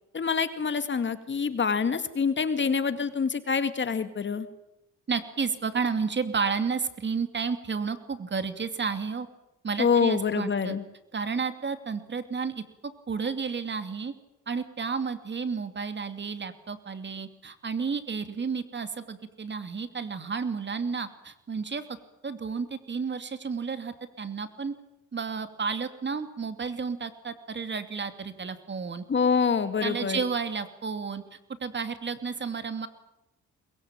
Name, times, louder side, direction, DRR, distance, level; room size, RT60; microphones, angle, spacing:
voice 1, 0.1-4.5 9.8-10.8 29.1-30.2, left 6 dB, 40° left, 10 dB, 2.3 m, -26 dB
voice 2, 5.1-9.3 9.6-10.8 11.1-14.1 14.5-21.8 22.2-24.7 25.1-29.0 29.8-32.9, right 5 dB, 35° right, 10 dB, 2.7 m, -32 dB
22.5 x 22.0 x 9.1 m, 0.90 s
cardioid pair, 90°, 30 cm